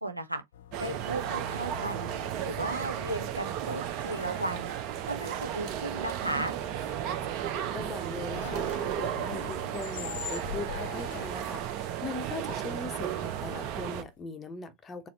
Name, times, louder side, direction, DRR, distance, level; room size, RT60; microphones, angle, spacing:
voice 1, 0.0-0.4 0.8-2.1 2.4-4.7 5.0-6.6, right 1 dB, 85° right, 0.8 m, -35 dB
sound 1, 0.5-14.2, left 9 dB, 60° left, 0.5 m, -46 dB
sound 2, 0.7-14.0, right 10 dB, 40° right, 0.7 m, -34 dB
voice 2, 7.7-15.1, left 4 dB, 20° left, 0.6 m, -40 dB
4.2 x 2.0 x 3.8 m
figure-of-eight pair, 90°, 0 cm